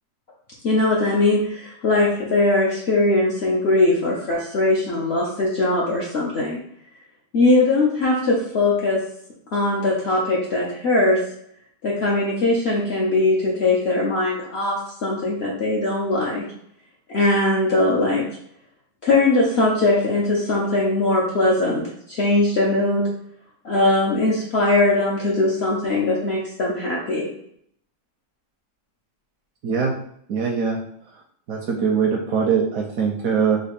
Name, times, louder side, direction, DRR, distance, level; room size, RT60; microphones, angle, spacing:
voice 1, 0.6-6.6 7.3-9.0 9.5-11.2 11.8-16.4 17.1-18.3 19.0-23.1 23.6-27.3, left 2 dB, 60° left, -4 dB, 0.7 m, -20 dB
voice 2, 29.6-29.9 30.3-30.8 31.5-33.6, right 6 dB, 70° right, 1 dB, 0.9 m, -22 dB
4.0 x 2.3 x 3.4 m, 0.69 s
omnidirectional pair, 1.8 m